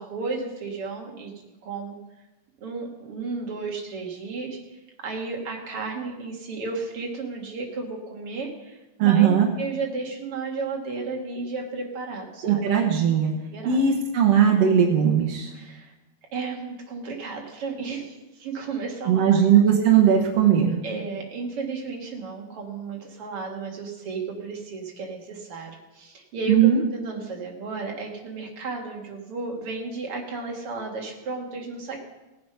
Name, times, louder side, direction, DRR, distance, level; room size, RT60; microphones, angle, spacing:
voice 1, 0.0-1.3 1.6-2.0 2.6-4.6 5.0-12.6 13.5-13.8 14.2-14.3 15.5-15.9 16.3-19.6 20.8-32.0, right 4 dB, 45° right, 0 dB, 2.3 m, -33 dB
voice 2, 9.0-9.5 12.4-13.3 13.6-15.5 19.1-20.8 26.5-26.8, right 8 dB, 70° right, 0 dB, 1.5 m, -18 dB
18.5 x 8.0 x 5.6 m, 1.0 s
omnidirectional pair, 4.5 m